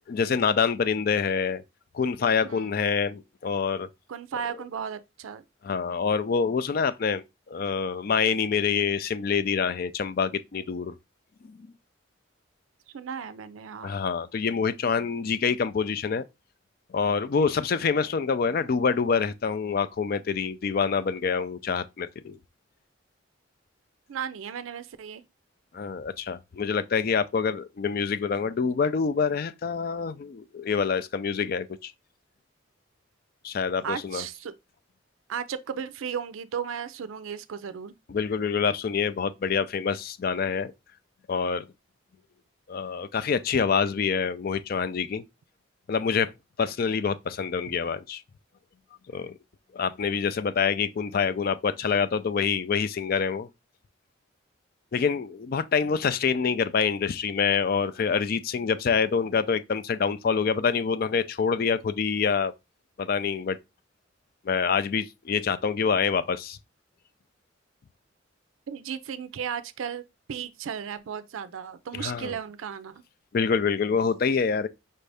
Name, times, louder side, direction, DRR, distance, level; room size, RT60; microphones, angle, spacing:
voice 1, 0.1-1.6 1.9-3.9 5.6-10.9 11.5-11.6 13.8-16.3 16.9-22.4 25.7-31.9 33.4-34.3 38.1-40.7 41.3-41.7 42.7-45.2 45.9-46.3 46.6-48.2 49.1-49.4 49.7-53.5 54.9-62.5 63.0-63.6 64.4-66.6 71.9-72.3 73.3-74.7, left 6 dB, 50° left, 0.4 m, -26 dB
voice 2, 2.4-2.8 4.1-5.4 12.9-13.9 24.1-25.2 33.8-34.5 35.3-37.9 68.7-70.0 70.3-72.9, right 7 dB, 85° right, 0.4 m, -35 dB
5.4 x 2.6 x 3.3 m
head